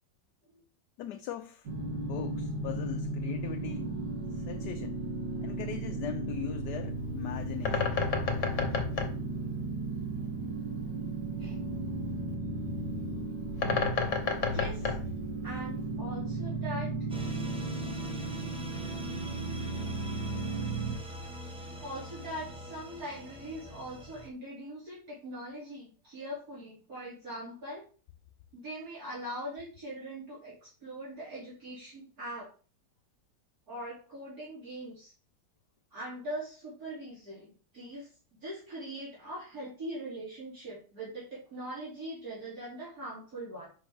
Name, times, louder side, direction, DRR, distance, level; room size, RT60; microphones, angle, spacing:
voice 1, 1.0-1.7 2.0-4.0 4.3-5.0 5.4-8.0 21.6-21.7, left 11 dB, 75° left, 1.1 m, -40 dB
sound 1, 1.7-21.0, right 3 dB, 80° right, 2.2 m, -35 dB
Bird, 6.8-16.0, left 5 dB, 45° left, 1.4 m, -34 dB
voice 2, 14.4-14.9 15.4-16.9 21.8-27.9 28.5-32.5 33.7-35.1 35.9-43.7, right 1 dB, 55° right, 3.3 m, -41 dB
sound 2, 17.1-24.3, equal, 5° right, 0.7 m, -42 dB
7.6 x 5.6 x 3.5 m
omnidirectional pair, 1.9 m